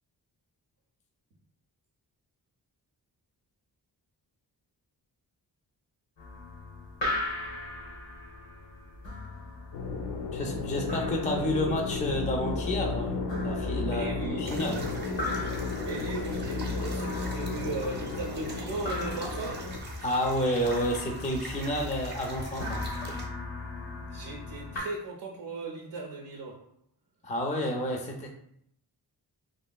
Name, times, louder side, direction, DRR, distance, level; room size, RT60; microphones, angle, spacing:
sound 1, 6.2-24.8, left 2 dB, 90° left, 0.9 m, -40 dB
sound 2, 9.7-19.8, left 3 dB, 75° left, 0.5 m, -33 dB
voice 1, 10.3-14.9 20.0-22.8 27.2-28.3, equal, 20° left, 1 dB, 0.3 m, -30 dB
voice 2, 13.8-14.4 15.7-19.8 24.1-26.6, right 3 dB, 75° right, -1 dB, 0.5 m, -37 dB
sound 3, 14.4-23.3, right 1 dB, 25° right, 0.6 m, -41 dB
3.0 x 2.5 x 2.3 m, 0.68 s
wide cardioid pair, 110°, 42 cm